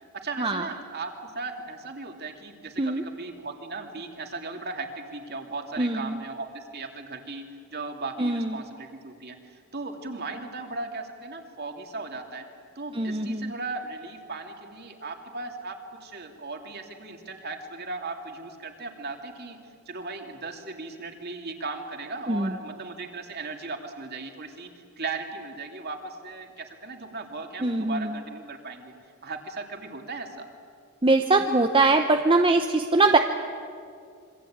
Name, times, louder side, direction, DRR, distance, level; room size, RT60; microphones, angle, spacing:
voice 1, 0.1-7.4 7.7-12.4 12.7-15.8 16.0-19.6 19.9-24.7 25.0-28.9 29.2-30.5, right 3 dB, 45° right, 4 dB, 2.8 m, -37 dB
voice 2, 5.8-6.2 8.2-8.6 12.9-13.5 22.3-22.5 27.6-28.2 31.0-33.2, right 3 dB, 25° right, 5 dB, 0.9 m, -22 dB
27.0 x 24.5 x 8.8 m, 2.3 s
head